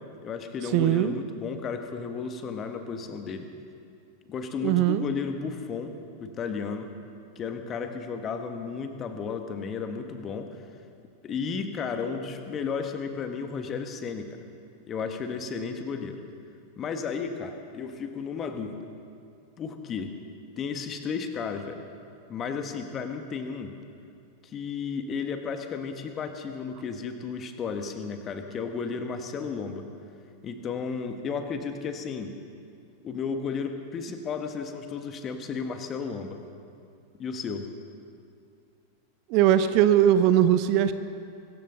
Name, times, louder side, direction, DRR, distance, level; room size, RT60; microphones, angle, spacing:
voice 1, 0.2-3.5 4.3-6.9 7.3-10.6 11.2-14.4 14.9-16.2 16.8-18.9 19.6-20.1 20.6-21.8 22.3-23.7 24.4-29.9 30.4-32.3 33.0-36.4 37.2-37.7, left 5 dB, 25° left, 6 dB, 1.5 m, -33 dB
voice 2, 0.7-1.2 4.6-5.1 39.3-40.9, right 11 dB, 45° right, 12 dB, 0.7 m, -20 dB
24.0 x 14.5 x 3.9 m, 2.5 s
figure-of-eight pair, 90°, 0 cm